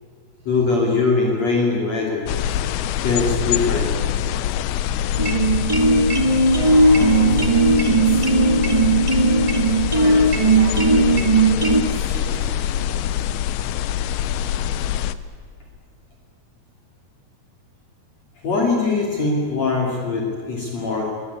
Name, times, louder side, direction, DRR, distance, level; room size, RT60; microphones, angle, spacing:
voice 1, 0.5-2.3 3.0-3.9 18.4-21.1, left 3 dB, 45° left, -1 dB, 3.7 m, -21 dB
sound 1, 2.3-15.2, left 10 dB, 80° left, 2.6 m, -24 dB
Bowed string instrument, 4.7-7.9, left 1 dB, 80° right, 6.7 m, -36 dB
sound 2, 5.2-11.8, right 2 dB, 20° right, 0.8 m, -17 dB
voice 2, 6.4-13.0, right 1 dB, 65° right, -6 dB, 7.1 m, -37 dB
22.5 x 19.5 x 8.4 m, 2.3 s
omnidirectional pair, 4.6 m